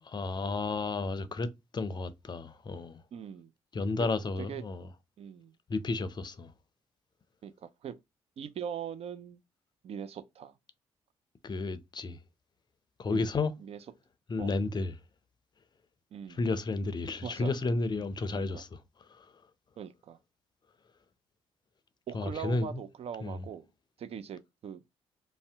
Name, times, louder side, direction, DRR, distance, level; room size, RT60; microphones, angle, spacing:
voice 1, 0.0-3.0 3.7-4.9 5.7-6.5 11.4-12.2 13.0-13.5 14.3-14.9 16.3-19.3 22.1-22.8 23.2-23.4, left 3 dB, 35° left, 0.5 m, -32 dB
voice 2, 3.1-3.5 4.4-4.6 5.2-5.5 7.4-8.0 8.4-9.4 9.8-10.5 13.1-13.3 13.6-13.8 14.4-14.5 16.1-16.4 17.2-17.5 18.0-18.1 18.5-18.6 19.8-20.2 22.1-23.7 24.0-24.8, right 8 dB, 55° right, 0.4 m, -41 dB
2.7 x 2.1 x 3.4 m
supercardioid pair, 60°, 12 cm